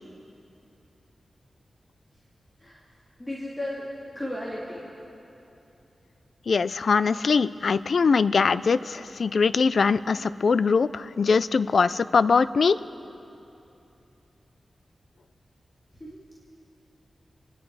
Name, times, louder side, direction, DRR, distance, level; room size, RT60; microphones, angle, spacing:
voice 1, 3.2-3.8 4.1-4.8 16.0-16.2, left 1 dB, 20° left, -7 dB, 2.4 m, -34 dB
voice 2, 6.5-12.8, left 5 dB, 65° left, 15 dB, 0.4 m, -22 dB
29.0 x 10.0 x 4.8 m, 2.9 s
wide cardioid pair, 110°, 0 cm